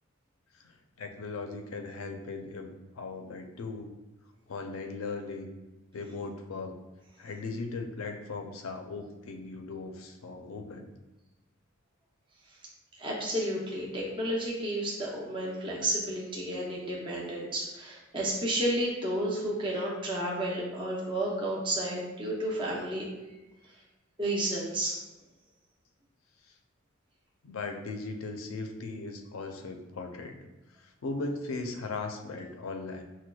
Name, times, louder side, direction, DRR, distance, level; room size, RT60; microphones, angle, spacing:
voice 1, 0.6-3.9 4.5-5.5 5.9-6.7 7.2-10.9 27.4-30.4 30.8-33.0, left 3 dB, 80° left, 5 dB, 0.4 m, -38 dB
voice 2, 13.0-23.0 24.2-24.9, right 1 dB, 25° right, -4 dB, 0.6 m, -31 dB
6.0 x 2.2 x 2.3 m, 1.1 s
head